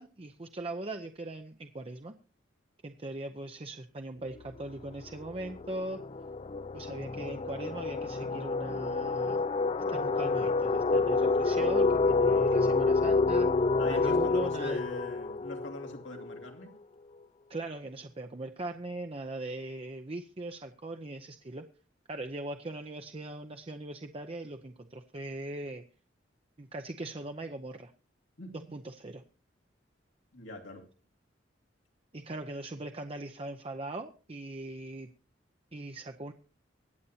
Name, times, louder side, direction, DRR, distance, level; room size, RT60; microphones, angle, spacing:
voice 1, 0.0-2.1 2.8-6.0 6.7-9.4 9.9-13.6 13.9-14.8 17.5-21.7 22.1-25.8 26.6-27.9 28.7-29.2 32.1-35.1 35.7-36.3, right 2 dB, 30° right, 0.7 m, -40 dB
sound 1, 4.4-4.6 4.9-16.5, left 3 dB, 30° left, 0.5 m, -28 dB
voice 2, 13.8-16.7 28.4-28.6 30.3-30.9, left 2 dB, 90° left, 2.7 m, -43 dB
24.0 x 8.3 x 2.8 m
head